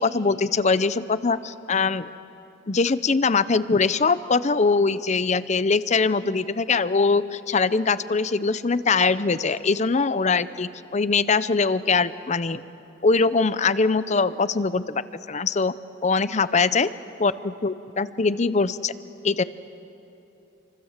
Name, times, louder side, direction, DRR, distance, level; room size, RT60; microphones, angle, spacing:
voice 1, 0.0-2.1 2.7-12.6 13.0-15.0 15.3-15.7 16.0-16.9 17.2-18.9 19.2-19.4, left 4 dB, 40° left, 15 dB, 0.6 m, -22 dB
28.0 x 24.5 x 7.4 m, 2.9 s
head